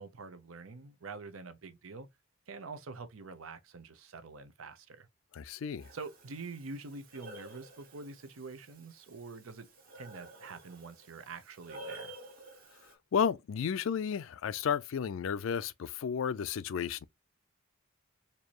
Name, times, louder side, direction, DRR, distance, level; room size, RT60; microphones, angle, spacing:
voice 1, 0.0-2.1 2.5-5.1 5.9-9.7 9.9-12.1, right 4 dB, 85° right, 0.8 m, -46 dB
voice 2, 5.3-5.9 13.1-17.0, left 7 dB, 70° left, 0.4 m, -32 dB
Breathing, 5.8-12.9, right 1 dB, 45° right, 1.4 m, -51 dB
4.5 x 2.7 x 3.0 m
head